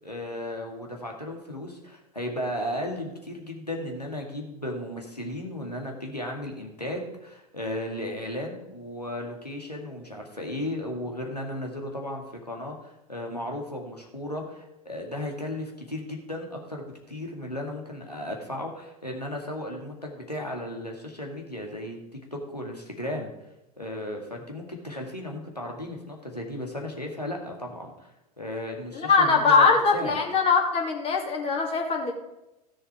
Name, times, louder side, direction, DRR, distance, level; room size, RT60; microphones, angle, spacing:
voice 1, 0.0-22.0 22.3-23.3 23.8-30.2, left 1 dB, 90° left, 1 dB, 2.0 m, -35 dB
voice 2, 28.9-32.1, left 4 dB, 30° left, 1 dB, 2.4 m, -22 dB
15.0 x 6.7 x 4.7 m, 0.93 s
figure-of-eight pair, 85°, 20 cm